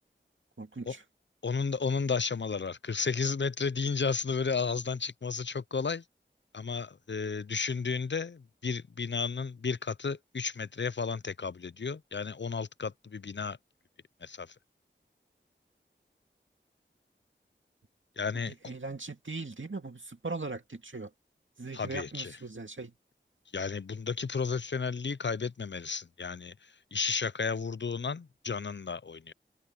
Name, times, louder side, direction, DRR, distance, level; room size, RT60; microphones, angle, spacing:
voice 1, 0.6-1.0 18.5-21.1 21.6-22.9, right 3 dB, 75° right, 2.2 m, -39 dB
voice 2, 1.4-6.0 6.5-13.6 14.2-14.5 18.2-18.7 21.7-22.3 23.5-26.5 26.9-29.3, left 5 dB, 65° left, 0.5 m, -33 dB
open air
wide cardioid pair, 45°, 20 cm